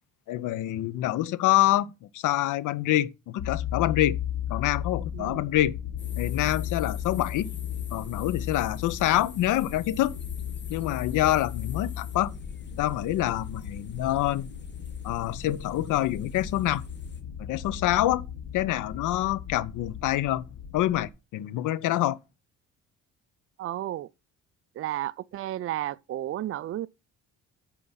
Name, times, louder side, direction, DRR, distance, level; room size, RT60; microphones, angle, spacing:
voice 1, 0.3-4.2 4.5-5.7 6.2-7.5 7.9-10.2 10.7-12.3 12.8-14.5 15.0-16.8 17.4-18.2 18.5-20.5 20.7-22.2, left 14 dB, 85° left, 0.7 m, -26 dB
sound 1, 3.4-21.1, left 9 dB, 60° left, 1.6 m, -36 dB
sound 2, 6.0-17.2, left 5 dB, 35° left, 1.6 m, -50 dB
voice 2, 23.6-24.1 24.8-26.9, right 13 dB, 45° right, 0.4 m, -32 dB
9.9 x 4.6 x 5.7 m
cardioid pair, 90°, 30 cm